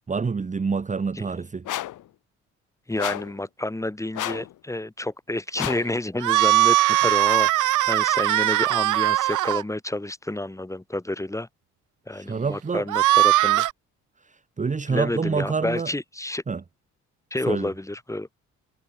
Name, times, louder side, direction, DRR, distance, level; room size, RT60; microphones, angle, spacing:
voice 1, 0.1-1.6 12.1-12.8 14.2-15.9 16.5-16.6 17.5-17.7, right 5 dB, 25° right, 1.1 m, -27 dB
sound 1, 1.7-2.0 3.0-3.4 4.1-4.5 5.6-5.9, left 14 dB, 85° left, 6.3 m, -31 dB
voice 2, 2.9-11.5 12.1-13.7 14.9-16.4 17.3-18.3, left 1 dB, 10° left, 3.5 m, -29 dB
sound 2, 6.2-9.6 12.9-13.7, right 15 dB, 85° right, 1.9 m, -20 dB
cardioid pair, 90°, 30 cm